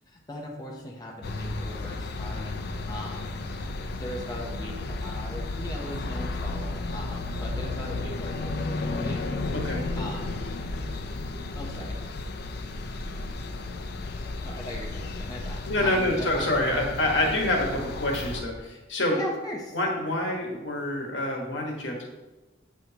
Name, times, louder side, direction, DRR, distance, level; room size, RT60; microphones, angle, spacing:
voice 1, 0.1-3.4 4.0-9.3 9.9-10.4 11.5-12.0 14.4-16.5 19.1-19.8, left 1 dB, 20° left, -2 dB, 0.8 m, -39 dB
sound 1, 1.2-18.4, left 2 dB, 55° left, 0.5 m, -33 dB
voice 2, 9.5-10.0 15.6-19.2 19.7-22.0, left 1 dB, 75° left, 0 dB, 1.5 m, -27 dB
7.9 x 6.3 x 2.9 m, 1.1 s
head